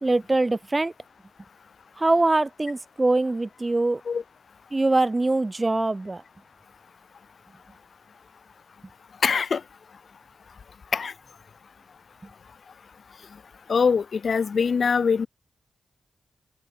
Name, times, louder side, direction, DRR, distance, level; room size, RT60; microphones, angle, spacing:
voice 1, 0.0-0.9 2.0-4.0 4.7-6.2, right 2 dB, 25° right, 0.5 m, -23 dB
voice 2, 9.2-9.6 10.9-11.1 13.7-15.3, left 5 dB, 65° left, 0.5 m, -23 dB
open air
cardioid pair, 60°, 0 cm